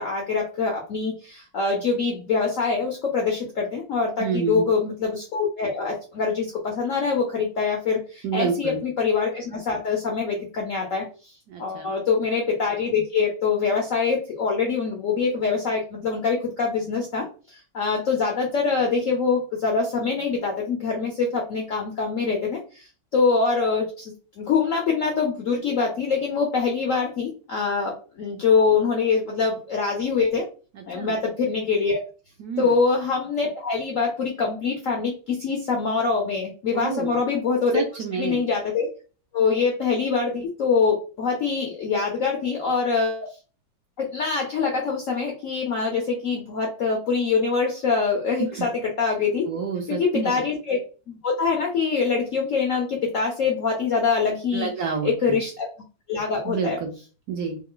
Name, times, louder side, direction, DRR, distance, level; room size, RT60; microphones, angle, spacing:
voice 1, 0.0-11.0 11.6-30.4 30.9-32.0 32.6-37.8 38.1-38.9 39.3-43.3 44.0-49.5 49.9-50.8 51.1-55.7 56.1-56.8, left 5 dB, 70° left, 0 dB, 0.7 m, -24 dB
voice 2, 4.2-4.6 8.2-8.8 11.5-11.9 30.8-31.1 32.4-32.8 36.7-37.2 37.7-38.4 48.5-48.7 49.5-50.3 54.5-55.4 56.4-56.9 57.3-57.6, right 6 dB, 70° right, 3 dB, 0.9 m, -29 dB
3.2 x 2.2 x 3.7 m, 0.36 s
omnidirectional pair, 2.1 m